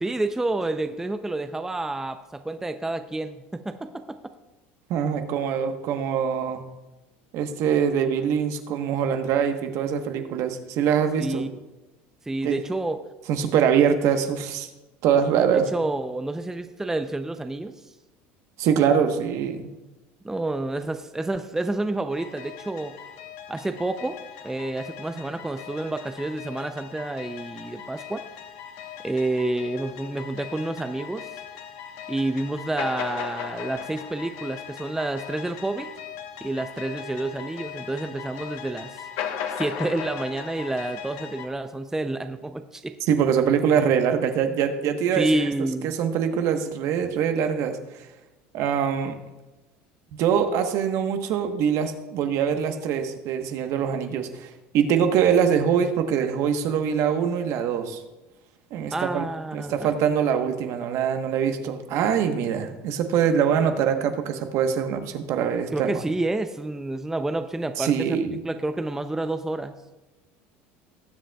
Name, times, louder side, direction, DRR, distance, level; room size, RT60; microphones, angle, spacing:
voice 1, 0.0-4.2 11.2-11.5 12.3-13.0 15.5-17.7 20.2-22.9 23.5-24.2 24.4-28.3 29.0-31.3 32.1-35.9 36.4-39.0 39.6-42.9 45.2-46.0 58.9-59.9 65.7-69.7, right 2 dB, 10° right, 8 dB, 0.5 m, -29 dB
voice 2, 4.9-6.6 7.3-11.4 12.4-12.6 13.3-14.7 15.0-15.7 18.6-19.7 43.0-45.3 45.8-47.8 48.5-49.2 50.1-58.0 58.7-59.2 59.5-66.0 67.8-68.4, right 7 dB, 60° right, 6 dB, 1.1 m, -23 dB
sound 1, 22.1-41.5, left 9 dB, 70° left, 1.1 m, -38 dB
19.0 x 7.6 x 2.3 m, 1.1 s
supercardioid pair, 105°, 6 cm